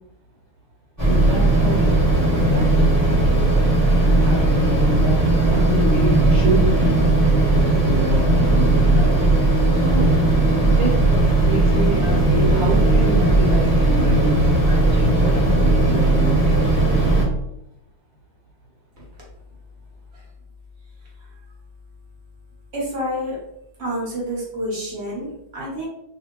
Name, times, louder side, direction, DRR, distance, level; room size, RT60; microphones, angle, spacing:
sound 1, 1.0-17.2, right 2 dB, 15° right, 0.7 m, -17 dB
voice 1, 1.0-3.5 4.2-7.1 7.3-9.1 9.7-10.2 10.6-17.1, right 1 dB, 70° right, -1 dB, 1.4 m, -27 dB
voice 2, 22.7-23.4 23.8-25.9, equal, 50° right, -4 dB, 0.8 m, -28 dB
3.3 x 2.5 x 2.9 m, 0.79 s
omnidirectional pair, 2.4 m